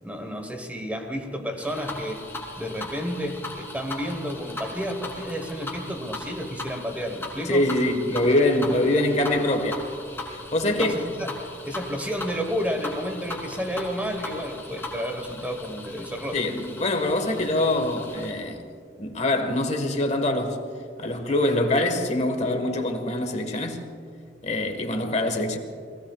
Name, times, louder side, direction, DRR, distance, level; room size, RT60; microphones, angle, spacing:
voice 1, 0.0-2.2 2.6-7.7 10.6-11.3 11.6-16.4, equal, 10° right, 1.3 m, -31 dB
sound 1, 1.6-18.3, left 2 dB, 15° left, 3.2 m, -38 dB
voice 2, 7.4-9.8 10.5-10.9 16.3-18.6 19.0-20.6 21.0-23.9 24.4-25.6, left 1 dB, 40° left, 1.5 m, -24 dB
29.5 x 20.0 x 2.4 m
head